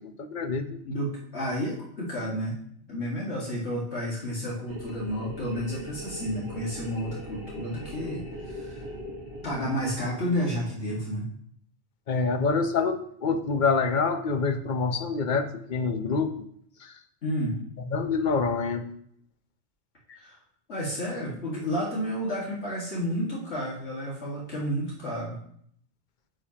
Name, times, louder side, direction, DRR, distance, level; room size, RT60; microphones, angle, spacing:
voice 1, 0.0-0.8 12.1-16.4 16.8-16.9 17.9-18.9 20.1-20.2, left 4 dB, 45° left, 8 dB, 0.8 m, -26 dB
voice 2, 0.8-2.6 2.9-8.8 9.4-11.2 17.2-17.6 20.2-20.4 20.7-25.4, equal, 70° left, -5 dB, 2.2 m, -31 dB
sound 1, 4.7-10.4, equal, 25° right, 1.2 m, -40 dB
9.7 x 7.3 x 2.9 m, 0.65 s
omnidirectional pair, 1.2 m